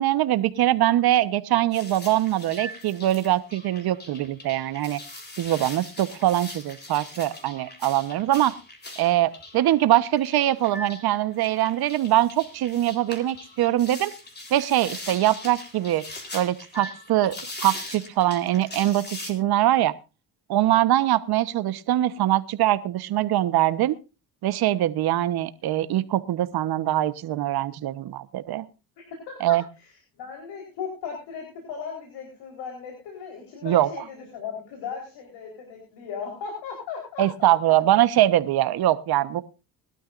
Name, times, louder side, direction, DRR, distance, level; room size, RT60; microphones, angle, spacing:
voice 1, 0.0-5.0 5.4-8.6 9.0-14.1 14.5-16.0 16.3-17.3 17.6-19.9 20.5-24.0 24.4-28.7 29.4-29.6 33.6-33.9 37.2-39.4, right 13 dB, 65° right, 13 dB, 1.2 m, -23 dB
sound 1, 1.7-19.3, left 2 dB, 25° left, 4.0 m, -41 dB
voice 2, 29.3-29.9 30.2-37.7, left 6 dB, 75° left, 1 dB, 4.5 m, -37 dB
21.5 x 12.5 x 2.6 m, 0.31 s
supercardioid pair, 85°, 40 cm